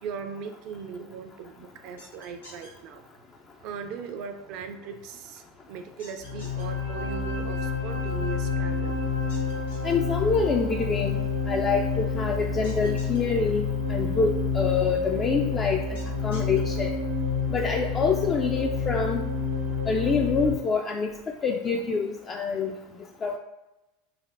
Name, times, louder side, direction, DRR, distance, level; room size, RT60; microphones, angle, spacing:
voice 1, 0.0-3.0 3.6-8.9, right 6 dB, 50° right, 6 dB, 0.4 m, -39 dB
sound 1, 2.0-2.7 6.0-6.6 9.3-9.9 12.6-13.2 16.0-16.6, left 1 dB, 85° left, 1.2 m, -48 dB
sound 2, 6.2-20.5, left 4 dB, 85° right, 0.8 m, -29 dB
voice 2, 9.8-16.0 16.2-17.0 17.5-19.3 19.9-21.1 21.4-22.7 23.2-23.4, left 5 dB, 30° left, 1 dB, 0.3 m, -26 dB
3.2 x 2.1 x 3.8 m, 1.0 s
figure-of-eight pair, 85°, 0 cm